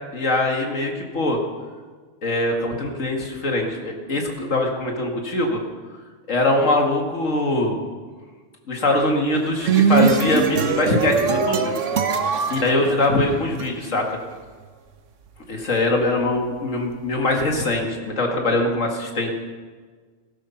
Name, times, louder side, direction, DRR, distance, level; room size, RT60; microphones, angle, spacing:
voice 1, 0.1-1.4 2.2-5.6 6.3-7.8 8.7-11.7 12.2-14.2 15.5-19.3, left 2 dB, 75° left, 2 dB, 2.2 m, -22 dB
sound 1, 9.3-13.7, right 6 dB, 70° right, 1.3 m, -21 dB
16.0 x 13.0 x 5.7 m, 1.5 s
omnidirectional pair, 1.3 m